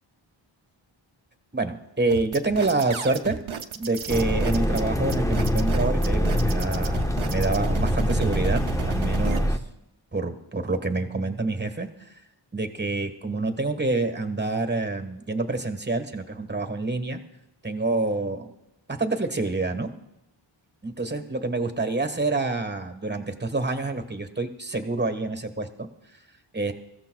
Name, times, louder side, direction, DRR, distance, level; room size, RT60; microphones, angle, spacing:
voice 1, 1.5-3.4 3.7-9.6 10.1-11.9 12.5-17.2 17.6-18.5 18.9-19.9 20.8-25.9 26.5-26.7, right 3 dB, 20° right, 7 dB, 1.4 m, -27 dB
sound 1, 2.1-9.4, right 6 dB, 75° right, 0.8 m, -34 dB
sound 2, 4.1-9.6, equal, 5° left, 0.7 m, -24 dB
24.0 x 15.0 x 2.3 m, 0.88 s
wide cardioid pair, 70°, 49 cm